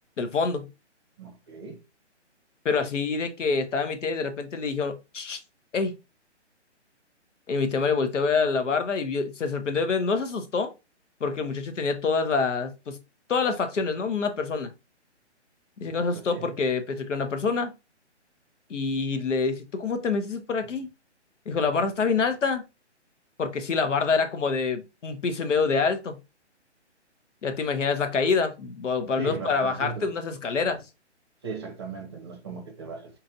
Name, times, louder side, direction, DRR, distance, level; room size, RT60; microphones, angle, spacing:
voice 1, 0.2-0.6 2.6-5.4 5.7-5.9 7.5-10.7 11.2-13.0 13.3-14.7 15.8-17.7 18.7-20.9 21.5-22.6 23.4-26.2 27.4-30.8, left 4 dB, 85° left, 1.0 m, -26 dB
voice 2, 1.2-1.8 15.8-16.5 29.2-30.1 31.4-33.2, right 4 dB, 25° right, 0.7 m, -38 dB
4.2 x 2.9 x 2.5 m
hypercardioid pair, 165°, 36 cm